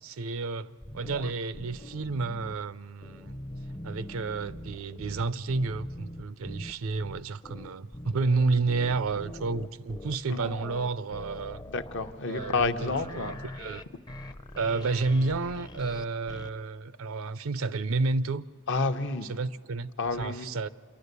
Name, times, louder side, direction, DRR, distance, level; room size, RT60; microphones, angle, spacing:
voice 1, 0.0-3.4 3.8-11.6 12.3-13.8 14.5-18.4 19.3-19.9 20.2-20.7, right 3 dB, 65° right, 0.5 m, -30 dB
sound 1, 0.8-2.6 3.0-16.5, left 1 dB, 20° left, 0.6 m, -42 dB
voice 2, 11.7-13.4 18.7-19.3 20.0-20.5, left 3 dB, 60° left, 0.9 m, -30 dB
27.5 x 11.5 x 8.2 m
head